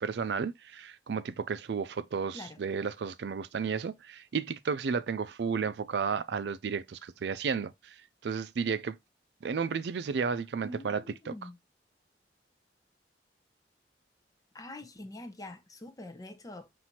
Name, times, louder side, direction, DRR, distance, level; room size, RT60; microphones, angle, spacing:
voice 1, 0.0-7.9 8.2-9.0 9.4-11.3, right 5 dB, 70° right, 0.4 m, -33 dB
voice 2, 10.6-11.6 14.5-16.7, left 1 dB, 20° left, 0.6 m, -45 dB
5.7 x 2.6 x 2.9 m
head